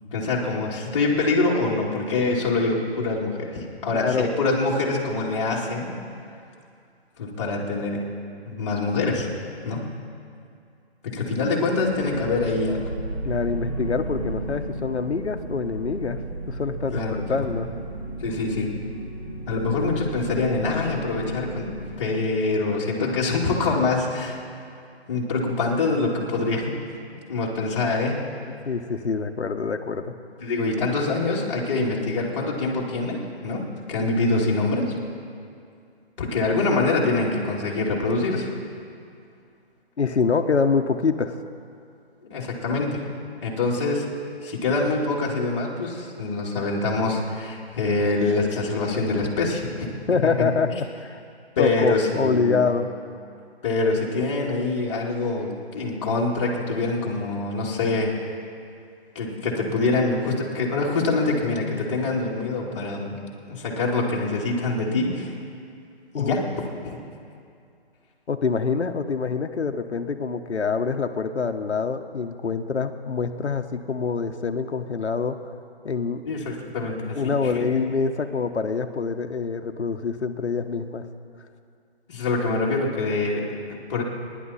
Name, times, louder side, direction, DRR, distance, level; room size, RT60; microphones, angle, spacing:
voice 1, 0.1-5.9 7.2-8.0 8.5-9.3 9.6-9.9 11.0-12.8 16.9-17.4 18.2-18.7 19.5-21.7 22.0-24.4 25.1-26.8 27.3-28.2 30.4-35.0 36.2-38.5 42.3-43.1 43.4-44.1 44.4-49.9 50.4-50.5 51.6-52.6 53.6-58.1 59.1-63.2 63.5-65.3 66.1-66.5 66.8-67.0 76.2-77.8 82.1-84.0, left 3 dB, 25° left, -4 dB, 2.4 m, -25 dB
voice 2, 3.9-4.3 13.2-16.2 16.5-17.0 17.3-17.7 23.0-23.1 28.6-30.1 40.0-41.3 50.1-51.2 51.6-52.9 66.1-66.3 68.3-75.4 75.8-76.2 77.2-81.1, left 5 dB, 85° left, 7 dB, 1.2 m, -25 dB
sound 1, 11.7-21.9, right 2 dB, 10° right, 2.4 m, -34 dB
27.5 x 11.0 x 4.2 m, 2.4 s
hypercardioid pair, 165°, 33 cm